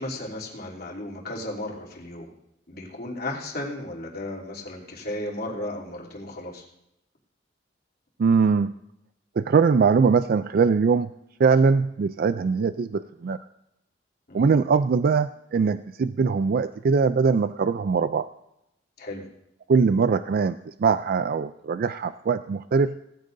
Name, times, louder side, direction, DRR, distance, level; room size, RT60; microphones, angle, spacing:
voice 1, 0.0-2.3 2.7-6.6 14.3-14.5 19.0-19.2, left 1 dB, 55° left, -3 dB, 3.1 m, -34 dB
voice 2, 8.2-8.7 9.4-11.1 11.4-13.4 14.3-18.3 19.7-23.0, right 5 dB, 55° right, 12 dB, 0.3 m, -21 dB
19.0 x 14.5 x 2.6 m, 0.83 s
head